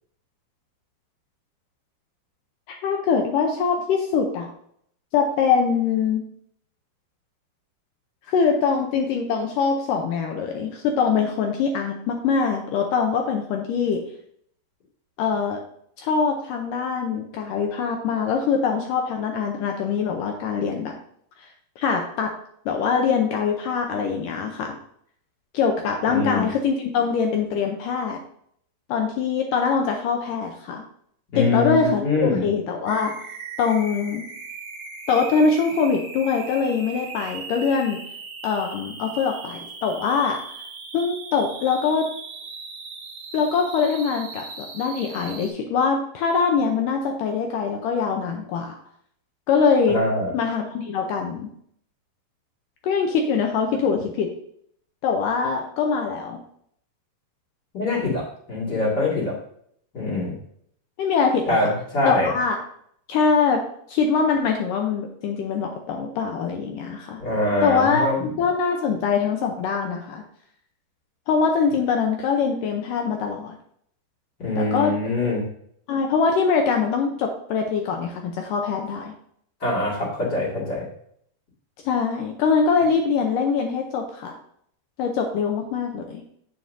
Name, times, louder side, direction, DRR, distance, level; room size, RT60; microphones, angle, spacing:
voice 1, 2.7-4.5 5.1-6.2 8.3-14.0 15.2-15.6 16.0-21.0 21.8-22.3 22.7-24.8 25.5-28.2 28.9-30.8 31.4-33.2 33.6-34.3 35.1-38.0 38.4-40.4 40.9-42.1 43.3-48.8 49.5-50.0 50.3-51.5 52.8-54.3 55.0-56.4 61.0-61.4 62.1-62.6 63.1-63.6 63.9-67.2 67.6-70.2 71.3-73.6 74.6-74.9 75.9-79.1 81.9-84.4 85.0-86.2, left 5 dB, 80° left, 2 dB, 2.0 m, -23 dB
voice 2, 26.1-26.5 31.3-32.4 49.9-50.3 57.7-58.2 58.5-59.3 59.9-60.3 61.4-62.3 67.2-68.2 74.4-75.4 79.6-80.9, left 2 dB, 35° left, -3 dB, 2.0 m, -23 dB
sound 1, 32.9-45.5, right 4 dB, 65° right, 1.5 m, -39 dB
8.7 x 7.3 x 2.7 m, 0.67 s
omnidirectional pair, 4.5 m